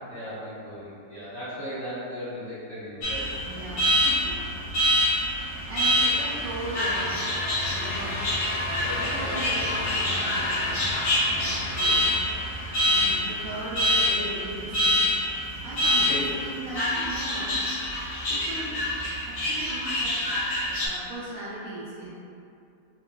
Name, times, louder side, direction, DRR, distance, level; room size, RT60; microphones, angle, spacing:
voice 1, 0.1-3.3 6.0-6.2 8.7-9.4 12.8-13.5 15.9-16.3, equal, 40° left, -14 dB, 1.7 m, -37 dB
Alarm, 3.0-20.9, equal, 55° left, 1.0 m, -26 dB
voice 2, 3.5-4.4 5.2-7.3 7.7-8.2 9.0-10.8 11.2-12.0 12.5-15.1 15.6-18.8 19.3-20.4 20.8-22.1, right 1 dB, 75° right, -8 dB, 0.8 m, -38 dB
sound 1, 4.9-13.8, left 2 dB, 85° left, 0.4 m, -35 dB
3.9 x 2.8 x 2.2 m, 2.6 s
omnidirectional pair, 1.9 m